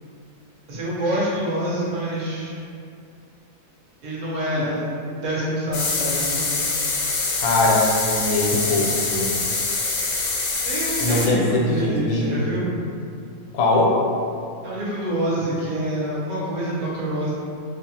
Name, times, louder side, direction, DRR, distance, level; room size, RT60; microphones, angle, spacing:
voice 1, 0.7-2.6 4.0-6.6 10.6-12.8 14.6-17.3, right 1 dB, 45° right, -8 dB, 0.6 m, -26 dB
sound 1, 5.7-11.3, left 3 dB, 65° left, 0.7 m, -25 dB
voice 2, 7.4-9.3 11.0-12.6 13.5-14.0, left 2 dB, 90° left, -3 dB, 1.0 m, -21 dB
2.7 x 2.3 x 2.8 m, 2.5 s
omnidirectional pair, 1.5 m